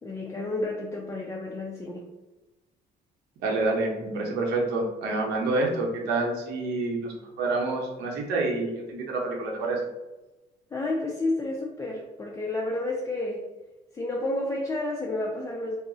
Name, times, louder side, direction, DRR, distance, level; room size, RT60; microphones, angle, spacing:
voice 1, 0.0-2.1 10.7-13.4 13.9-15.8, left 2 dB, 15° left, -2 dB, 0.4 m, -30 dB
voice 2, 3.4-9.9, right 2 dB, 80° right, 0 dB, 0.7 m, -28 dB
2.3 x 2.0 x 3.8 m, 1.1 s
cardioid pair, 110°, 17 cm